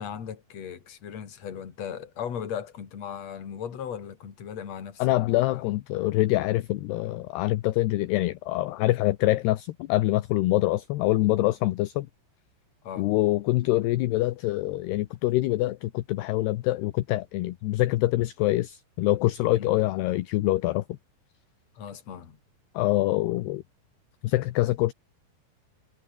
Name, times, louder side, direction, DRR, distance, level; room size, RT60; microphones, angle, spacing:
voice 1, 0.0-5.0 5.4-5.6 12.8-13.1 19.5-19.7 21.7-22.4, left 8 dB, 40° left, 3.3 m, -37 dB
voice 2, 5.0-12.1 13.0-20.8 22.7-23.6 24.2-24.9, left 17 dB, 75° left, 2.6 m, -25 dB
omnidirectional pair, 5.5 m